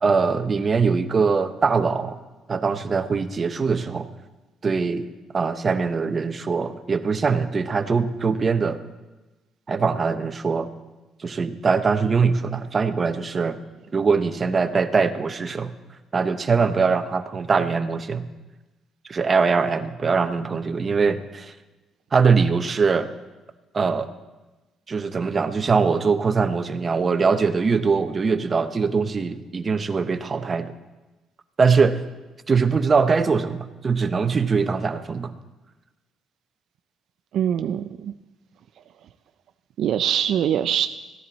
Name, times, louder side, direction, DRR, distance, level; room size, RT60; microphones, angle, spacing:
voice 1, 0.0-2.2 2.5-4.1 4.6-5.1 5.3-8.8 9.7-10.7 11.2-13.6 13.9-15.7 16.1-18.2 19.1-21.5 22.1-23.1 23.7-24.1 24.9-30.7 31.6-32.0 32.5-35.3, right 5 dB, 40° right, 10 dB, 0.8 m, -22 dB
voice 2, 37.3-38.1 39.8-40.9, right 9 dB, 70° right, 9 dB, 0.4 m, -23 dB
14.5 x 10.0 x 4.2 m, 1.1 s
supercardioid pair, 75°, 0 cm